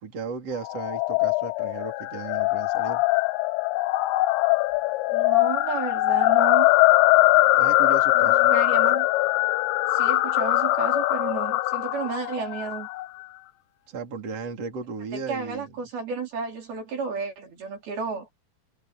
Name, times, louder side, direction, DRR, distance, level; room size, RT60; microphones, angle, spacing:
voice 1, 0.0-3.0 7.6-8.4 13.9-15.7, right 4 dB, 35° right, 4.7 m, -35 dB
sound 1, 0.6-13.1, left 18 dB, 80° left, 3.1 m, -22 dB
voice 2, 5.1-6.7 8.1-9.1 9.9-12.9 15.1-18.3, right 5 dB, 60° right, 5.8 m, -32 dB
omnidirectional pair, 5.1 m